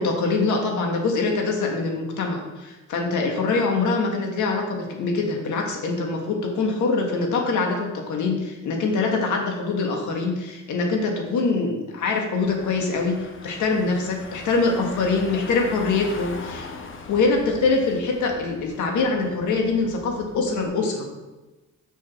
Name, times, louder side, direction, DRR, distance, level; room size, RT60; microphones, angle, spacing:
voice 1, 0.0-16.7 17.1-21.1, left 3 dB, 75° left, 2 dB, 1.8 m, -24 dB
Car / Engine, 12.5-20.7, left 4 dB, 45° left, 1.1 m, -41 dB
6.5 x 6.4 x 6.0 m, 1.1 s
cardioid pair, 90°, 30 cm